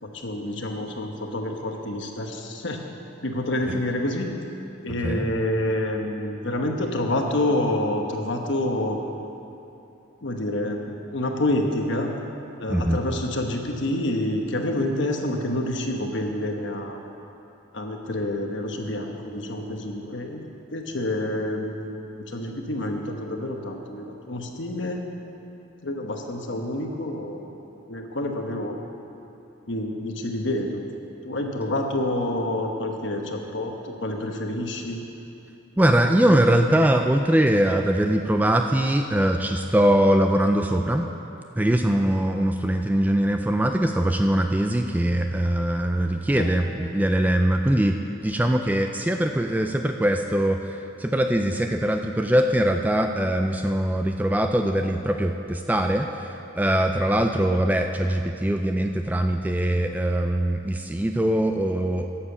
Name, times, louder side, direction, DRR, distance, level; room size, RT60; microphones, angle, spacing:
voice 1, 0.0-2.8 3.2-4.3 4.8-9.0 10.2-12.1 12.6-17.0 17.7-25.0 25.8-28.8 29.7-30.8 31.2-35.0 46.4-46.5, left 1 dB, 60° left, 3 dB, 1.2 m, -28 dB
voice 2, 35.8-41.1 41.6-62.1, right 1 dB, 10° right, 5 dB, 0.3 m, -22 dB
11.5 x 7.4 x 7.2 m, 2.8 s
head